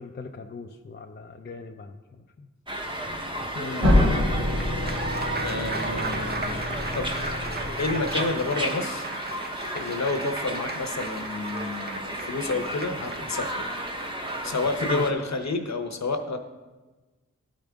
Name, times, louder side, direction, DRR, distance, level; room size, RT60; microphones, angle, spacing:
voice 1, 0.0-2.5 14.8-15.1, left 4 dB, 35° left, 4 dB, 0.4 m, -38 dB
sound 1, 2.7-15.1, equal, 15° right, 1.0 m, -33 dB
voice 2, 3.5-4.2 5.4-6.6 6.9-7.2 7.8-9.1 9.7-13.6 14.4-16.4, left 3 dB, 60° left, 6 dB, 0.9 m, -30 dB
sound 2, 3.8-8.6, left 1 dB, 55° right, 2.5 m, -26 dB
Applause, 4.4-14.8, right 3 dB, 30° right, 0.7 m, -37 dB
13.0 x 5.1 x 3.5 m, 1.2 s
wide cardioid pair, 60°, 31 cm